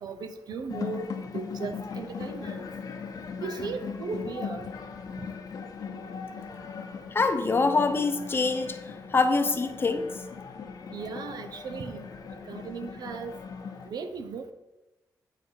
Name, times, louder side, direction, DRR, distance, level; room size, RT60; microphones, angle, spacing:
voice 1, 0.0-2.6 3.4-4.7 5.2-5.3 10.9-12.0 12.5-13.3 13.9-14.5, right 4 dB, 75° right, 8 dB, 0.6 m, -37 dB
sound 1, 0.7-13.9, left 5 dB, 65° left, 0.8 m, -39 dB
voice 2, 7.1-8.8 9.1-10.1, left 3 dB, 35° left, 8 dB, 0.7 m, -24 dB
8.0 x 5.1 x 4.4 m, 1.0 s
wide cardioid pair, 125°, 7 cm